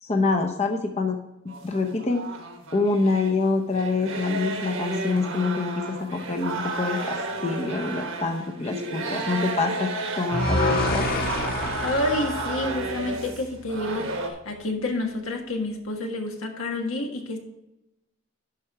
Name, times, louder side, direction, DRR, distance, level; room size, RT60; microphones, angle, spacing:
voice 1, 0.0-1.2 1.6-2.3 2.7-7.1 7.4-11.0, left 3 dB, 30° left, 0.7 m, -26 dB
sound 1, 1.5-3.3 3.7-14.3, right 3 dB, 75° right, 1.3 m, -32 dB
sound 2, 10.3-13.5, left 2 dB, 45° left, 1.6 m, -27 dB
voice 2, 11.8-17.4, left 2 dB, 80° left, 1.6 m, -29 dB
11.5 x 4.5 x 4.7 m
head